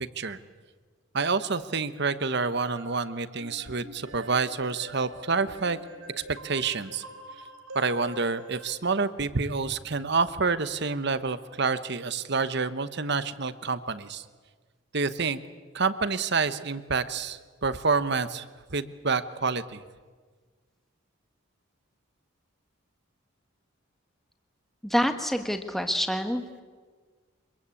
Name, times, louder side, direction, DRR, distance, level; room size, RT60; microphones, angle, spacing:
voice 1, 1.1-5.8 6.3-7.0 7.7-14.2 14.9-15.4 15.7-18.4 18.7-19.8, right 4 dB, 50° right, 13 dB, 1.0 m, -28 dB
sound 1, 2.2-8.7, right 1 dB, 75° right, 4.7 m, -45 dB
voice 2, 24.8-26.4, equal, ahead, 6 dB, 1.4 m, -26 dB
25.0 x 22.5 x 8.5 m, 1.5 s
head